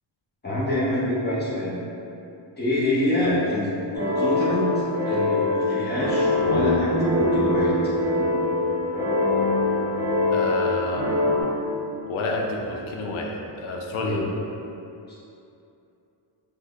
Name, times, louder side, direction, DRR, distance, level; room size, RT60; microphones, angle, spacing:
voice 1, 0.4-1.8 2.6-7.7 8.2-8.3 14.0-14.2, left 1 dB, 20° left, -9 dB, 0.5 m, -26 dB
sound 1, 3.9-11.4, left 2 dB, 50° left, 1.4 m, -23 dB
voice 2, 10.3-11.2 12.1-14.2, left 2 dB, 80° left, 0 dB, 0.6 m, -29 dB
3.2 x 2.0 x 3.5 m, 2.7 s
wide cardioid pair, 165°, 48 cm